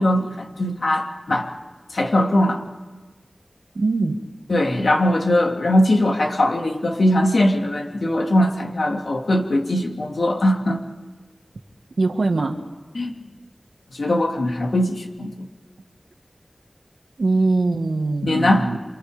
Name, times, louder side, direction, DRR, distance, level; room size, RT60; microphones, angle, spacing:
voice 1, 0.0-1.5 1.9-2.6 4.5-10.8 12.9-13.1 13.9-15.5 18.2-18.7, left 1 dB, 80° left, 1 dB, 2.9 m, -20 dB
voice 2, 3.8-4.2 12.0-12.6 17.2-18.8, right 3 dB, 85° right, 5 dB, 1.9 m, -21 dB
28.0 x 27.5 x 5.2 m, 1.3 s
wide cardioid pair, 65°, 0 cm